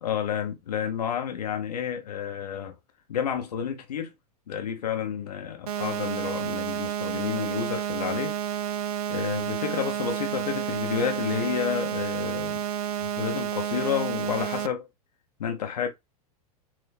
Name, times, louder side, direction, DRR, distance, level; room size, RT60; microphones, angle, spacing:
voice 1, 0.0-2.7 3.1-4.1 4.5-8.4 9.1-12.6 13.0-14.9 15.4-15.9, left 8 dB, 85° left, 1.0 m, -30 dB
sound 1, 5.7-14.7, right 9 dB, 70° right, 0.6 m, -30 dB
4.4 x 2.2 x 4.3 m
hypercardioid pair, 110°, 20 cm